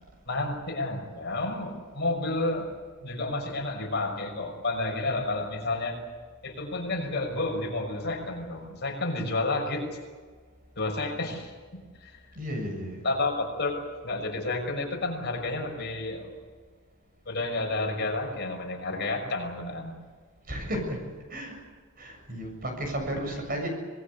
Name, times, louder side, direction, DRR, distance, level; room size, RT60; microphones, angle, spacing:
voice 1, 0.3-2.7 3.0-6.0 6.4-9.9 10.8-12.2 13.0-16.3 17.3-19.9 23.1-23.2, left 2 dB, 50° left, 2 dB, 5.9 m, -31 dB
voice 2, 12.4-13.0 20.5-21.0 21.3-21.6 22.0-23.7, equal, 40° right, 3 dB, 7.3 m, -33 dB
26.0 x 20.0 x 8.4 m, 1.5 s
head